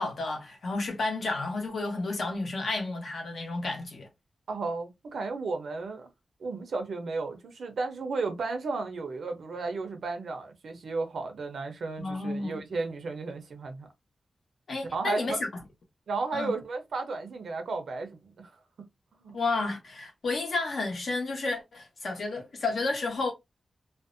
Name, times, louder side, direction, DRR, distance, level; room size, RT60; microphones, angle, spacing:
voice 1, 0.0-4.1 12.0-12.6 14.7-15.5 16.3-16.5 19.3-23.3, left 3 dB, 60° left, 0.9 m, -31 dB
voice 2, 4.5-6.1 6.4-13.9 14.8-15.4 16.1-18.5 19.1-19.4, right 3 dB, 80° right, 0.6 m, -34 dB
2.5 x 2.1 x 2.5 m
wide cardioid pair, 150°, 0 cm